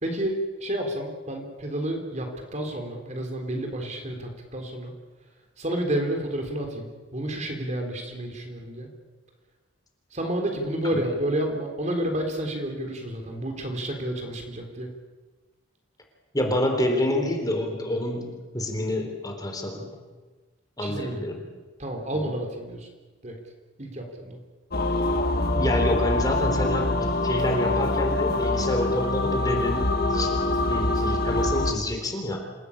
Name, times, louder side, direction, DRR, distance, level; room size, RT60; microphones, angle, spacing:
voice 1, 0.0-4.9 5.6-8.9 10.1-14.9 20.8-21.2 21.8-22.9 23.2-23.4 23.8-24.4, right 1 dB, 40° right, 3 dB, 3.9 m, -30 dB
voice 2, 16.3-19.9 20.8-21.4 25.6-30.4 30.7-32.4, left 1 dB, 20° left, 3 dB, 3.7 m, -28 dB
sound 1, 24.7-31.7, left 2 dB, 50° left, 1.9 m, -24 dB
27.5 x 17.0 x 8.7 m, 1.3 s
head